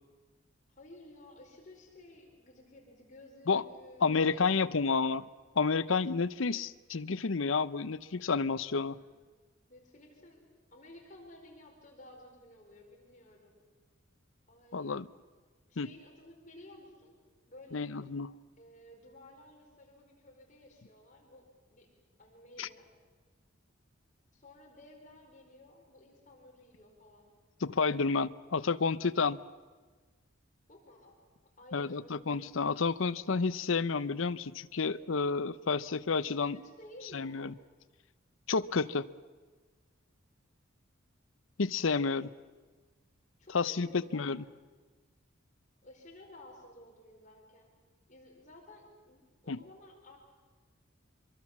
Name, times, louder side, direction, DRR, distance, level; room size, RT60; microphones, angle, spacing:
voice 1, 0.7-5.0 6.3-6.6 8.9-9.2 9.7-10.4 10.7-13.6 14.5-15.0 15.7-17.1 17.5-17.9 18.6-21.9 22.2-22.9 24.3-27.3 30.7-31.2 31.6-32.5 36.2-37.5 41.9-42.0 43.4-44.3 45.8-47.7 48.1-50.2, left 1 dB, 35° left, 4.7 m, -54 dB
voice 2, 4.0-5.2 5.6-9.0 14.7-15.1 15.8-15.9 17.7-18.4 22.6-22.7 27.6-29.4 31.7-36.6 37.1-37.5 38.5-39.1 41.6-42.3 43.5-44.4 49.5-49.6, left 4 dB, 75° left, 0.7 m, -30 dB
24.5 x 23.5 x 7.4 m
head